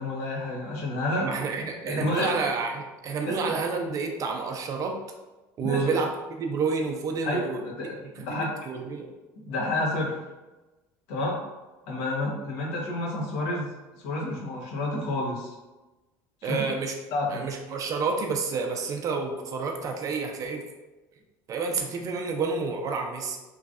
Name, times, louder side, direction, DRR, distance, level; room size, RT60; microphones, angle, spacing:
voice 1, 0.0-1.4 1.8-2.4 3.3-3.5 5.6-6.0 7.2-8.5 9.4-10.2 11.1-11.4 11.9-15.5 16.4-16.7 17.1-17.5, left 2 dB, 80° left, -3 dB, 0.9 m, -30 dB
voice 2, 1.2-4.9 5.6-7.6 8.2-9.1 16.4-16.9 17.3-20.6 21.5-23.4, right 4 dB, 40° right, 3 dB, 0.5 m, -29 dB
3.1 x 2.5 x 2.4 m, 1.1 s
supercardioid pair, 100°, 8 cm